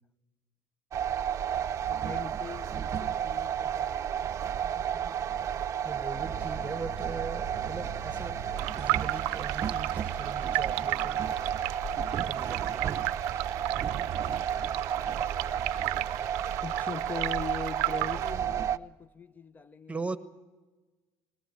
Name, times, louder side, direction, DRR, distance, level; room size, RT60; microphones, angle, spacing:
sound 1, 0.9-18.8, right 9 dB, 35° right, 0.7 m, -32 dB
voice 1, 1.9-4.3 4.6-5.3 12.8-12.9 13.1-13.3 14.0-14.1 14.5-14.7 16.6-20.1, left 6 dB, 20° left, 0.7 m, -42 dB
voice 2, 5.8-8.4 8.8-11.2 12.3-12.9 19.9-20.2, right 4 dB, 15° right, 1.2 m, -39 dB
sound 2, 6.1-12.4, left 1 dB, 55° left, 1.9 m, -46 dB
sound 3, 8.6-18.3, right 20 dB, 90° right, 0.6 m, -35 dB
21.5 x 17.5 x 9.0 m
cardioid pair, 115°, 8 cm